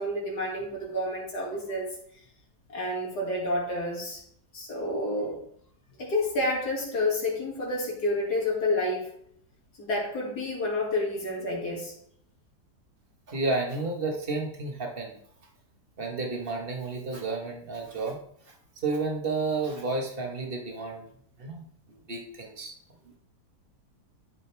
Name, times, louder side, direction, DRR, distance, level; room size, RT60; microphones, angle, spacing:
voice 1, 0.0-1.9 2.7-4.2 4.5-5.4 6.0-9.1 9.8-11.9, left 1 dB, 75° left, -2 dB, 3.0 m, -29 dB
voice 2, 13.3-15.2 16.0-18.2 18.4-18.5 18.8-21.1 21.4-21.6 21.9-22.8, right 3 dB, 35° right, 1 dB, 1.6 m, -31 dB
12.5 x 5.2 x 3.4 m, 0.67 s
omnidirectional pair, 1.8 m